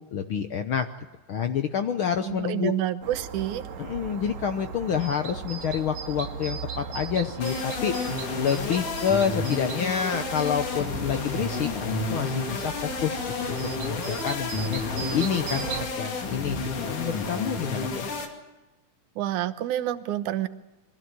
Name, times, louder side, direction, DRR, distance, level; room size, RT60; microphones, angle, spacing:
voice 1, 0.1-0.9 1.3-2.7 3.8-7.9 8.4-12.7 13.0-13.2 13.4-18.1, left 8 dB, 65° left, 8 dB, 1.3 m, -28 dB
voice 2, 2.2-3.6 19.2-20.5, right 12 dB, 90° right, 10 dB, 2.4 m, -28 dB
sound 1, 3.0-15.9, right 6 dB, 75° right, 2.7 m, -37 dB
sound 2, 7.4-18.3, left 3 dB, 90° left, 4.0 m, -31 dB
22.5 x 15.5 x 9.6 m, 1.1 s
omnidirectional pair, 3.4 m